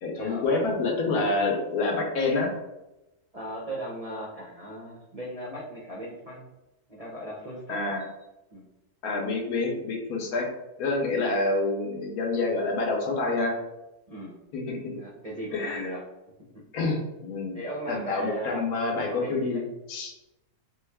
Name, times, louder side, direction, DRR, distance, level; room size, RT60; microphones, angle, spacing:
voice 1, 0.0-2.5 7.7-8.0 9.0-10.5 10.8-13.6 14.5-15.0 15.5-15.9 16.7-17.5 17.9-19.6 19.9-20.1, left 3 dB, 75° left, 1 dB, 1.2 m, -27 dB
voice 2, 3.3-6.5 6.9-7.9 8.5-8.6 14.1-14.4 14.9-16.0 16.5-16.6 17.5-18.6 19.0-19.6, right 1 dB, 60° right, -4 dB, 0.4 m, -37 dB
3.7 x 2.3 x 3.3 m, 0.96 s
omnidirectional pair, 1.6 m